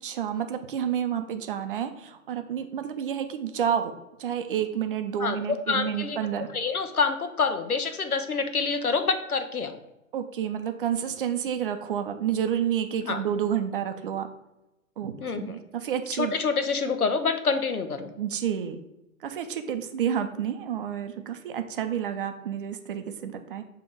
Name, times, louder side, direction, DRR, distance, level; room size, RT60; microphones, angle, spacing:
voice 1, 0.0-3.9 4.2-6.5 10.1-14.3 15.0-16.3 18.2-18.8 19.2-23.6, right 9 dB, 40° right, 7 dB, 0.5 m, -29 dB
voice 2, 5.2-6.2 6.5-9.8 13.0-13.2 15.2-15.5 16.2-18.1, left 4 dB, 90° left, 8 dB, 0.8 m, -27 dB
6.8 x 3.0 x 4.8 m, 0.92 s
figure-of-eight pair, 120°, 43 cm